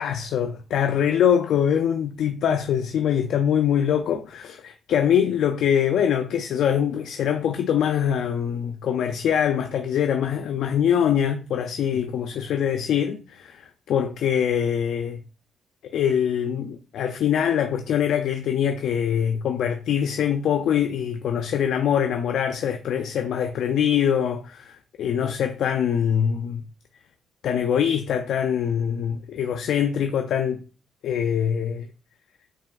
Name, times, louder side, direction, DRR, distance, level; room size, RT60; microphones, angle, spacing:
voice 1, 0.0-15.2 15.8-26.6 27.4-30.6 31.0-31.9, left 8 dB, 75° left, 0.4 m, -23 dB
7.2 x 3.0 x 2.4 m
cardioid pair, 90°, 0 cm